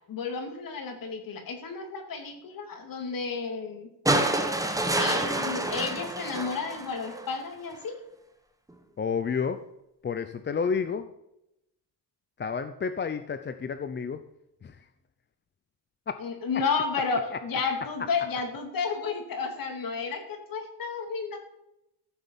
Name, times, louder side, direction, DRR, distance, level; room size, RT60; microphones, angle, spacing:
voice 1, 0.1-3.9 5.0-8.0 16.2-21.4, left 5 dB, 55° left, 5 dB, 2.9 m, -32 dB
sound 1, 4.1-7.4 8.7-8.8, right 2 dB, 10° right, 1.2 m, -28 dB
voice 2, 9.0-9.6 10.0-11.1 12.4-14.2 14.6-14.8 16.1-16.2 16.5-16.6 17.3-17.4, left 6 dB, 25° left, 10 dB, 0.6 m, -30 dB
14.5 x 7.0 x 7.2 m, 0.84 s
cardioid pair, 145°, 41 cm